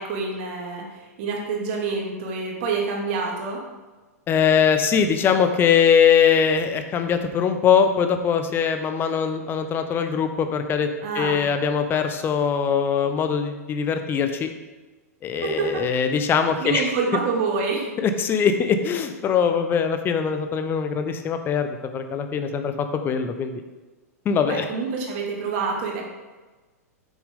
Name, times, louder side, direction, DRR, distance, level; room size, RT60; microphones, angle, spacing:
voice 1, 0.0-3.6 11.0-11.4 15.4-15.8 16.6-17.9 24.4-26.0, right 4 dB, 45° right, -1 dB, 2.4 m, -27 dB
voice 2, 4.3-10.9 11.1-14.5 15.2-16.8 18.0-23.6 24.2-24.7, left 7 dB, 25° left, 7 dB, 0.9 m, -22 dB
9.2 x 7.3 x 3.8 m, 1.2 s
figure-of-eight pair, 105°, 9 cm